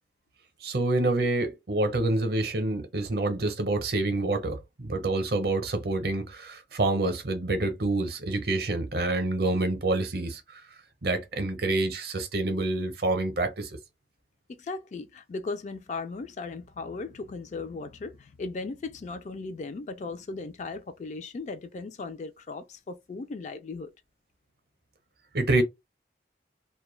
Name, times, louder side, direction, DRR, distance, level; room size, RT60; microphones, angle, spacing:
voice 1, 0.6-10.6 11.0-13.7 25.3-25.6, right 2 dB, 55° right, 0.6 m, -27 dB
voice 2, 14.5-23.9, left 3 dB, 40° left, 0.3 m, -37 dB
2.2 x 2.0 x 3.0 m
head